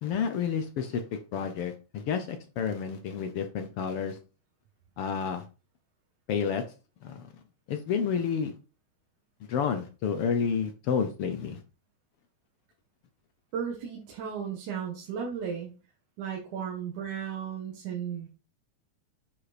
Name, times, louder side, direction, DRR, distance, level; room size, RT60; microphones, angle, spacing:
voice 1, 0.0-4.2 5.0-5.4 6.3-6.7 7.0-7.2 7.7-8.5 9.5-11.6, left 6 dB, 70° left, 8 dB, 1.5 m, -30 dB
voice 2, 13.5-15.7 16.2-18.3, right 7 dB, 80° right, -2 dB, 2.9 m, -35 dB
9.7 x 5.3 x 4.2 m, 0.34 s
omnidirectional pair, 3.4 m